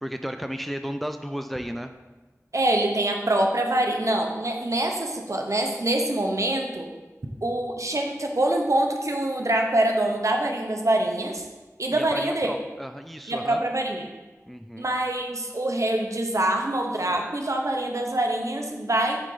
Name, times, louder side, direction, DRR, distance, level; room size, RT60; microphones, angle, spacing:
voice 1, 0.0-1.9 11.9-13.6 14.5-14.9, equal, ahead, 7 dB, 0.3 m, -33 dB
voice 2, 2.5-6.9 7.4-11.4 11.8-12.5 13.3-14.0 14.8-19.2, right 1 dB, 60° right, 2 dB, 0.8 m, -25 dB
8.0 x 3.8 x 3.8 m, 1.2 s
wide cardioid pair, 45°, 6 cm